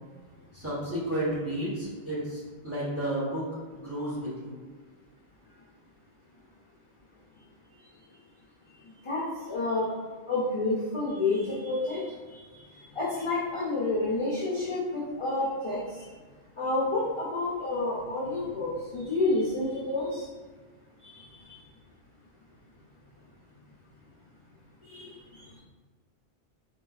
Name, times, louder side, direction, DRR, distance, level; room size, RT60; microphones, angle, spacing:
voice 1, 0.5-3.4 3.8-4.5, right 1 dB, 15° right, -8 dB, 0.9 m, -32 dB
voice 2, 9.0-9.9 10.3-12.1 12.9-16.0 16.6-20.2 24.8-25.1, left 2 dB, 40° left, -7 dB, 0.5 m, -29 dB
4.2 x 2.2 x 2.3 m, 1.4 s
omnidirectional pair, 1.1 m